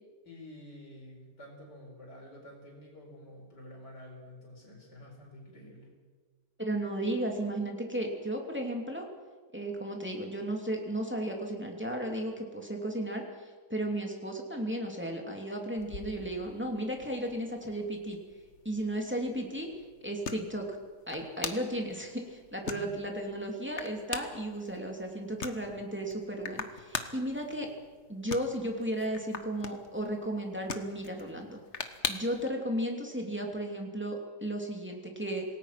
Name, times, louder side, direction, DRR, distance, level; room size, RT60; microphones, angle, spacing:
voice 1, 0.3-5.9 22.6-22.9, left 1 dB, 75° left, -1 dB, 5.3 m, -49 dB
voice 2, 6.6-9.1 9.5-18.2 18.6-19.7 20.0-20.8 21.1-27.7 28.1-31.6 32.1-35.4, right 1 dB, 5° right, 1 dB, 2.8 m, -34 dB
sound 1, 15.8-32.5, left 5 dB, 45° left, 1.5 m, -43 dB
27.0 x 18.5 x 6.0 m, 1.4 s
omnidirectional pair, 1.8 m